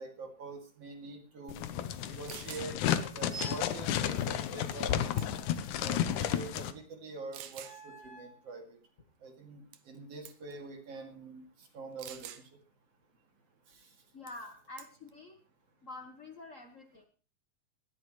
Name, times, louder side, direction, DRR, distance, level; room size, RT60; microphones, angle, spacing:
voice 1, 0.0-1.6 2.1-2.9 3.1-5.1 5.8-8.8 9.2-11.4 11.7-12.3, right 3 dB, 50° right, 3 dB, 3.3 m, -45 dB
sound 1, 1.5-6.7, left 10 dB, 80° left, 2.3 m, -32 dB
sound 2, 1.9-2.0 2.3-2.7 4.7-4.9 5.2-5.6 6.3-6.4 7.3-7.8 9.7-10.0 10.3-10.5 12.0-12.4 14.3-14.5 14.8-15.1, right 11 dB, 85° right, 2.6 m, -47 dB
sound 3, 3.3-3.8 4.9-6.2 7.5-8.4, right 4 dB, 5° right, 3.0 m, -48 dB
voice 2, 14.1-15.4 15.8-17.0, left 2 dB, 60° left, 4 dB, 0.7 m, -47 dB
19.5 x 13.5 x 3.2 m, 0.37 s
omnidirectional pair, 3.6 m